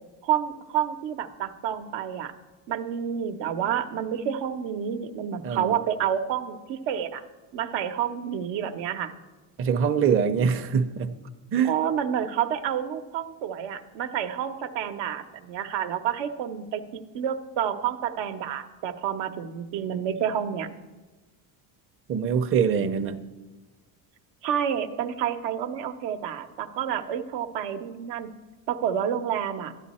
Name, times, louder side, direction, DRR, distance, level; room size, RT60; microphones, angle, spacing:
voice 1, 0.2-2.3 2.7-7.2 7.5-9.1 11.6-16.8 17.1-20.7 24.4-28.3 28.7-29.7, right 9 dB, 80° right, 6 dB, 0.9 m, -29 dB
voice 2, 5.4-5.8 9.6-11.1 11.5-11.7 22.1-23.2, right 7 dB, 30° right, 6 dB, 0.6 m, -24 dB
12.5 x 10.0 x 4.2 m, 1.2 s
cardioid pair, 115°, 41 cm